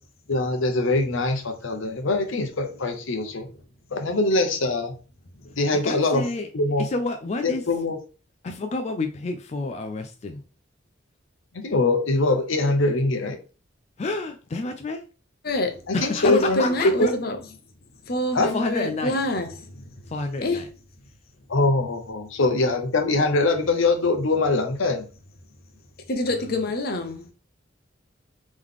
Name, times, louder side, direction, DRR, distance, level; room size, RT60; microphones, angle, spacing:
voice 1, 0.3-3.5 3.9-4.9 5.6-6.2 6.5-6.9 7.4-8.0 11.5-13.4 15.9-16.6 17.0-17.1 18.3-18.5 21.5-25.0, left 2 dB, 90° left, 0.8 m, -23 dB
voice 2, 1.7-2.0 5.4-5.6 15.4-15.8 16.2-17.4 18.1-19.8 20.4-20.6 26.1-27.2, left 2 dB, 50° left, 0.7 m, -26 dB
voice 3, 5.7-6.5 6.8-7.6 8.4-10.4 14.0-15.0 15.9-17.1 18.4-19.2 20.1-20.7, left 3 dB, 35° left, 0.4 m, -29 dB
3.7 x 3.1 x 3.6 m
head